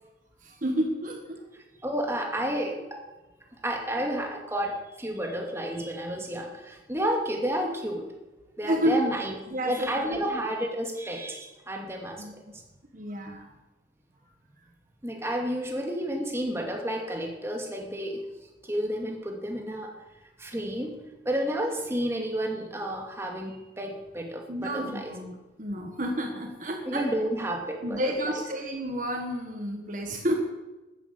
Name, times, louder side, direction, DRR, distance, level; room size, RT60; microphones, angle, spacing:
voice 1, 0.4-1.4 8.6-9.1 9.5-10.2 12.2-12.3 12.9-13.5 24.5-27.1 27.8-30.4, equal, 45° right, 3 dB, 1.6 m, -30 dB
voice 2, 1.8-3.0 3.6-8.0 8.6-9.3 9.6-12.4 15.0-18.2 18.6-19.9 20.4-20.9 21.2-25.1 26.9-28.1, equal, 15° right, 1 dB, 2.4 m, -31 dB
13.0 x 9.8 x 8.4 m, 1.1 s
head